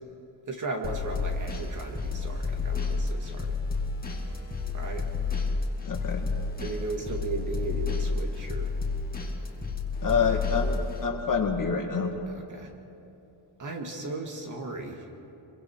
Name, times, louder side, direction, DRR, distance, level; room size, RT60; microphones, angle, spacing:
voice 1, 0.5-3.6 4.7-5.4 6.6-8.7 12.3-12.7 13.6-15.1, right 3 dB, 40° right, 2 dB, 2.4 m, -36 dB
sound 1, 0.8-11.1, left 4 dB, 20° left, 2.4 m, -31 dB
voice 2, 5.8-6.3 10.0-12.1, left 5 dB, 40° left, 3 dB, 1.9 m, -27 dB
27.5 x 23.0 x 4.8 m, 2.9 s
cardioid pair, 150°, 48 cm